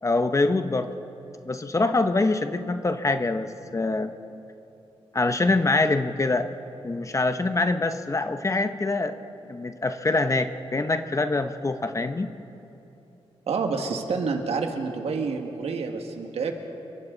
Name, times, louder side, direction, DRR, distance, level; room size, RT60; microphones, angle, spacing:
voice 1, 0.0-0.9 1.5-4.1 5.1-6.5 6.8-9.2 9.5-12.3, left 3 dB, 30° left, 8 dB, 1.0 m, -24 dB
voice 2, 13.5-16.5, right 4 dB, 75° right, 4 dB, 2.0 m, -28 dB
28.5 x 23.0 x 4.0 m, 2.9 s
cardioid pair, 75°, 11 cm